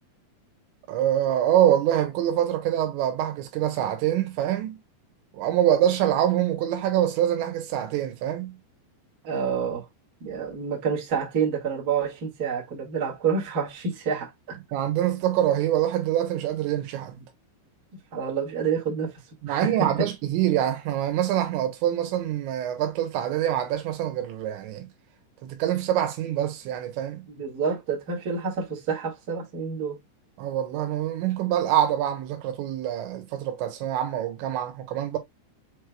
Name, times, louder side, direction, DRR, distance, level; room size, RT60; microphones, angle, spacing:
voice 1, 0.9-4.8 5.3-8.6 14.7-17.2 19.4-24.9 25.4-27.3 30.4-35.2, right 11 dB, 80° right, 3.4 m, -25 dB
voice 2, 9.2-9.8 10.2-14.6 18.1-19.2 19.5-20.1 27.4-30.0, right 6 dB, 55° right, 1.1 m, -28 dB
7.2 x 3.3 x 2.2 m
omnidirectional pair, 5.2 m